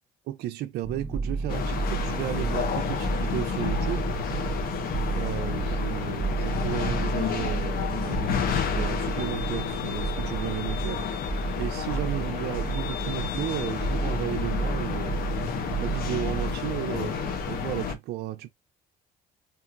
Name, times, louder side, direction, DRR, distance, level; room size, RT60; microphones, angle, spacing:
voice 1, 0.3-4.1 5.2-15.2 15.7-18.5, right 13 dB, 75° right, 0.5 m, -34 dB
sound 1, 0.8-16.5, right 4 dB, 10° right, 0.6 m, -32 dB
sound 2, 1.5-17.9, left 7 dB, 60° left, 0.7 m, -30 dB
2.8 x 2.6 x 2.5 m
cardioid pair, 110°, 17 cm